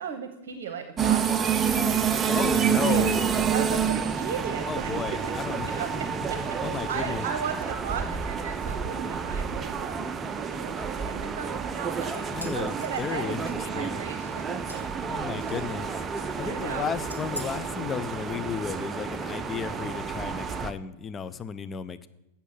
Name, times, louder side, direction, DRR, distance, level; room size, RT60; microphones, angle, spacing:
voice 1, 0.0-1.9 2.2-3.1 3.5-5.4 5.6-14.8 15.1-15.2 16.4-16.9, right 7 dB, 55° right, 8 dB, 0.9 m, -37 dB
sound 1, 1.0-20.7, right 6 dB, 20° right, 0.6 m, -29 dB
voice 2, 2.3-3.5 4.7-7.2 12.3-14.0 15.0-22.1, left 7 dB, 20° left, 13 dB, 0.4 m, -34 dB
sound 2, 11.8-13.8 14.3-15.0 15.4-15.9 16.2-16.6 17.1-17.5, equal, 90° left, 1.3 m, -44 dB
8.1 x 6.9 x 7.4 m, 0.95 s
figure-of-eight pair, 90°, 0 cm